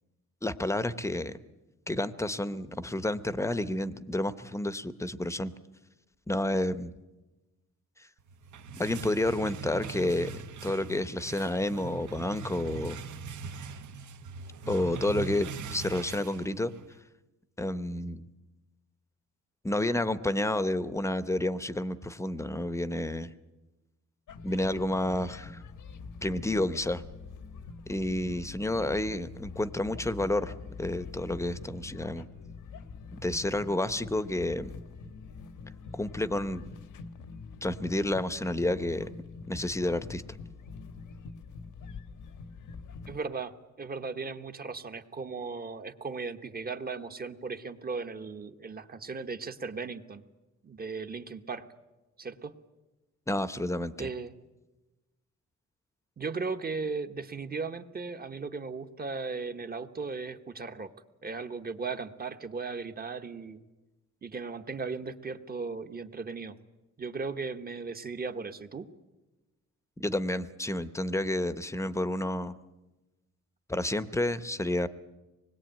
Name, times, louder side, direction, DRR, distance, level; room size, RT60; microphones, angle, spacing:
voice 1, 0.4-1.4 1.9-5.5 6.3-6.9 8.8-10.3 10.6-13.0 14.7-16.7 17.6-18.3 19.6-23.3 24.4-25.6 26.2-27.0 27.9-30.5 30.8-32.3 33.1-34.7 35.9-36.7 37.6-39.1 39.5-40.2 53.3-54.1 70.0-72.6 73.7-74.9, left 1 dB, 10° left, 13 dB, 0.8 m, -30 dB
sound 1, 8.3-17.0, right 5 dB, 70° right, 1.1 m, -41 dB
sound 2, 24.3-43.2, left 4 dB, 85° left, 1.4 m, -45 dB
voice 2, 43.1-50.2 50.6-51.7 52.2-52.5 54.0-54.3 56.2-60.9 61.2-63.6 64.2-66.6 67.0-68.9, right 4 dB, 30° right, 8 dB, 1.1 m, -37 dB
25.5 x 21.0 x 9.0 m, 1.1 s
wide cardioid pair, 165°, 30 cm